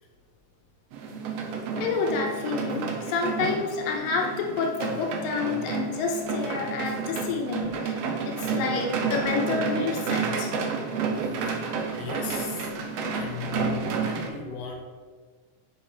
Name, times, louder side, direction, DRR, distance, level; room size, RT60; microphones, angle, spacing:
sound 1, 0.9-14.3, right 5 dB, 85° right, 1.4 m, -30 dB
voice 1, 1.8-7.9 8.2-10.5, left 5 dB, 90° left, 1 dB, 2.5 m, -29 dB
voice 2, 11.6-12.7 13.1-14.8, left 7 dB, 70° left, 1 dB, 1.6 m, -37 dB
6.4 x 5.3 x 4.3 m, 1.5 s
omnidirectional pair, 3.9 m